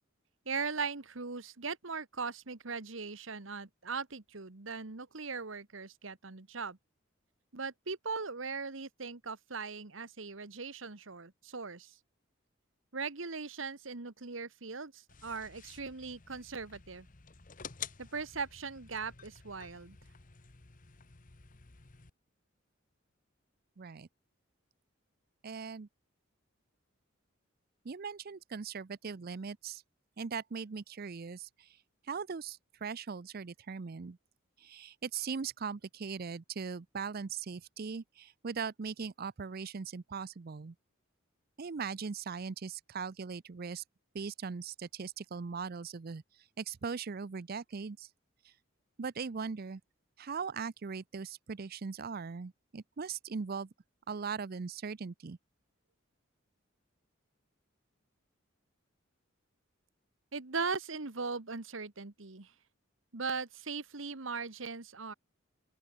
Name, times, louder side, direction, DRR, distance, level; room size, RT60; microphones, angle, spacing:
voice 1, 0.4-6.8 7.5-12.0 12.9-17.1 18.0-20.0 60.3-62.5 63.1-65.1, right 4 dB, 70° right, 1.5 m, -39 dB
sound 1, 15.1-22.1, left 7 dB, 40° left, 1.1 m, -51 dB
voice 2, 23.8-24.1 25.4-25.9 27.8-29.8 30.2-31.8 32.1-34.2 34.6-40.7 41.6-43.8 44.1-46.2 46.6-48.1 48.4-48.5 49.0-49.8 50.2-53.7 54.1-55.4, right 5 dB, 50° right, 0.5 m, -40 dB
open air
head